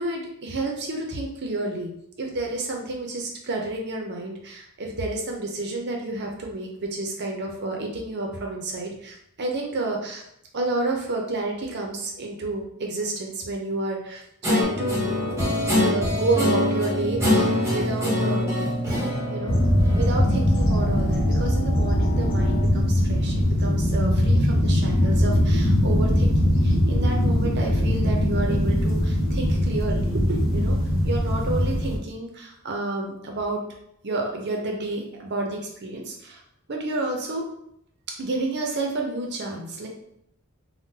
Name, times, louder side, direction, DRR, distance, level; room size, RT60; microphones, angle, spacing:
voice 1, 0.0-1.9 2.2-10.2 10.5-15.1 15.8-18.6 18.9-30.8 31.0-33.6 34.0-36.4 36.7-37.4 38.2-39.9, right 2 dB, 55° right, 1 dB, 0.6 m, -30 dB
Guitar, 14.4-20.2, left 1 dB, 15° right, 0.9 m, -25 dB
sound 1, 14.6-22.6, equal, 45° left, 1.3 m, -31 dB
sound 2, 19.5-32.0, equal, 65° left, 0.7 m, -21 dB
3.7 x 2.2 x 2.7 m, 0.73 s
head